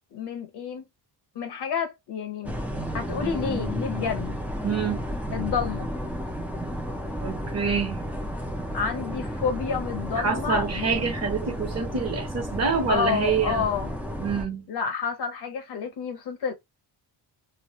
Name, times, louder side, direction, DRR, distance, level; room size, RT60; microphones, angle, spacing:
voice 1, 0.1-0.8 1.3-2.5 2.9-4.4 5.3-5.9 8.7-11.0 12.9-13.9 14.7-16.5, left 6 dB, 60° left, 0.9 m, -29 dB
sound 1, 2.4-14.4, equal, 5° right, 0.4 m, -32 dB
voice 2, 4.6-5.0 7.2-8.0 10.2-13.7 14.2-14.7, right 5 dB, 35° right, 1.1 m, -26 dB
3.1 x 2.4 x 2.9 m
wide cardioid pair, 165°, 45 cm